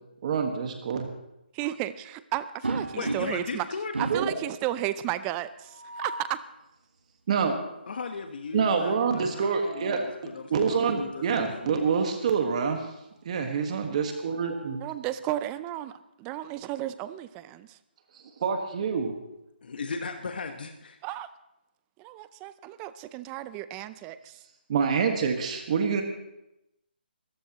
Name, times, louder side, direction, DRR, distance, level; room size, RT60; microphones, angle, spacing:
voice 1, 0.2-1.1 4.1-4.3 7.3-7.6 8.5-10.1 10.5-12.8 13.2-14.8 18.1-19.1 24.7-26.0, right 6 dB, 40° right, 5 dB, 1.5 m, -26 dB
voice 2, 1.5-3.7 4.0-6.4 14.8-17.8 21.0-21.3 22.0-24.4, right 14 dB, 15° right, 14 dB, 0.4 m, -33 dB
sound 1, 2.6-3.6 3.9-4.4 5.6-6.4 9.1-10.1 11.5-11.7 12.1-12.2 13.7-14.9, right 3 dB, 90° right, 1.5 m, -36 dB
voice 3, 2.9-3.9 7.9-10.0 10.2-11.9 19.6-21.0, left 4 dB, 60° left, 6 dB, 1.2 m, -37 dB
24.0 x 14.0 x 3.0 m, 0.90 s
figure-of-eight pair, 155°, 6 cm